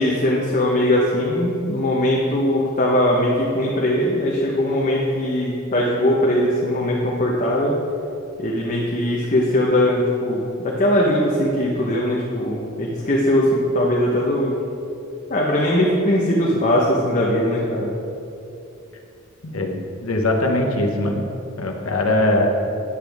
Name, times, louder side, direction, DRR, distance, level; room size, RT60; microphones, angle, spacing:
voice 1, 0.0-7.7 8.4-14.5 15.3-17.9, left 1 dB, 35° left, -4 dB, 0.9 m, -20 dB
voice 2, 19.4-21.2 21.6-22.5, left 1 dB, 85° left, 2 dB, 1.1 m, -21 dB
9.6 x 8.3 x 3.5 m, 2.8 s
head